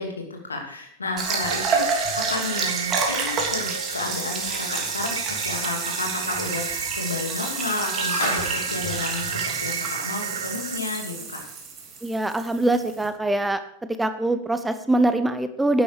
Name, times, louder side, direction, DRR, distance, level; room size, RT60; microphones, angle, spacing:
voice 1, 0.0-11.4, left 3 dB, 75° left, 2 dB, 2.7 m, -32 dB
sound 1, 1.2-13.1, right 4 dB, 30° right, 3.0 m, -29 dB
sound 2, 1.2-10.8, right 7 dB, 65° right, 0.5 m, -33 dB
sound 3, 4.2-10.3 10.6-10.7 12.1-12.2, left 1 dB, 60° left, 5.4 m, -37 dB
voice 2, 12.0-13.6 14.0-15.8, right 2 dB, 5° right, 10 dB, 0.8 m, -23 dB
11.5 x 10.0 x 4.8 m, 0.69 s
figure-of-eight pair, 90°, 0 cm